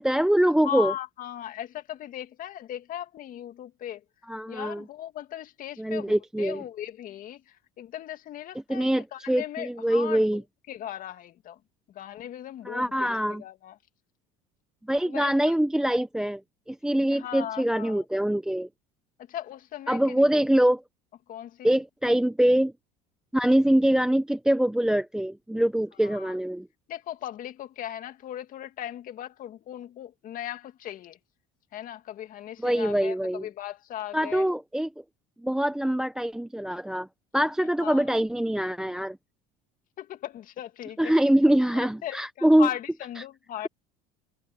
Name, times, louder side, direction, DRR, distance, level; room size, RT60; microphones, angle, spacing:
voice 1, 0.0-0.9 4.3-4.8 5.8-6.6 8.7-10.4 12.6-13.4 14.8-16.4 16.7-18.7 19.9-20.8 21.6-22.7 23.3-26.7 32.6-33.5 34.1-34.9 35.4-37.1 37.3-39.2 41.0-42.7, right 1 dB, 5° right, 1.0 m, -24 dB
voice 2, 0.6-4.0 4.5-10.4 10.7-11.6 11.9-13.8 15.0-15.5 17.1-18.0 19.3-20.3 21.3-21.7 26.0-26.4 26.9-31.2 31.7-34.4 37.8-38.1 40.0-41.1 41.7-43.7, left 11 dB, 50° left, 2.1 m, -38 dB
supercardioid pair, 115°, 18 cm